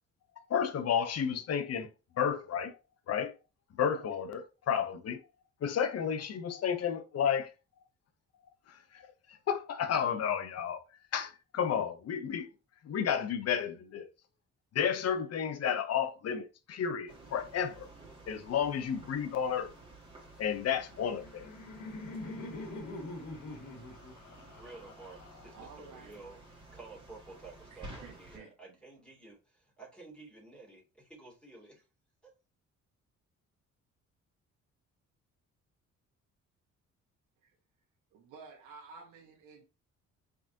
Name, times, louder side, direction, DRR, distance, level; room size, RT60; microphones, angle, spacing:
voice 1, 0.5-1.9 2.2-2.7 3.1-3.3 3.8-5.2 5.6-7.5 8.7-9.1 9.5-10.8 11.1-12.5 12.8-14.1 14.7-17.9 18.3-19.7 20.4-21.5, left 8 dB, 55° left, 0.8 m, -32 dB
sound 1, 17.1-28.4, right 2 dB, 15° right, 2.1 m, -53 dB
Laughter, 20.9-25.9, left 2 dB, 85° left, 1.3 m, -44 dB
voice 2, 24.5-31.9 32.2-32.3, right 3 dB, 5° left, 2.4 m, -52 dB
voice 3, 25.5-26.2 27.7-28.5 37.4-37.5 38.1-39.7, right 5 dB, 85° right, 1.3 m, -52 dB
4.8 x 3.7 x 2.8 m
cardioid pair, 90°, 30 cm